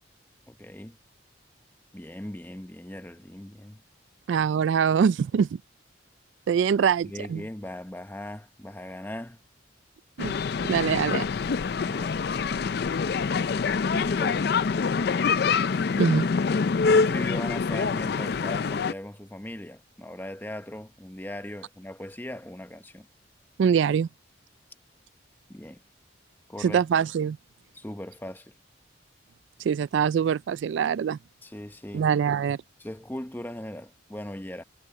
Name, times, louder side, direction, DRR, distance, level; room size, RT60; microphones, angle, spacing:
voice 1, 0.5-1.0 1.9-3.8 7.0-9.4 11.8-12.2 13.9-14.6 16.9-23.1 25.5-25.8 26.5-26.8 27.7-28.5 31.4-32.1 32.8-34.6, left 1 dB, 10° left, 0.7 m, -39 dB
voice 2, 4.3-5.6 6.5-7.4 10.2-10.3 10.7-11.3 16.0-16.3 23.6-24.1 26.6-27.4 29.6-31.2 31.9-32.6, right 7 dB, 70° right, 0.3 m, -23 dB
sound 1, 10.2-18.9, left 5 dB, 55° left, 0.4 m, -25 dB
head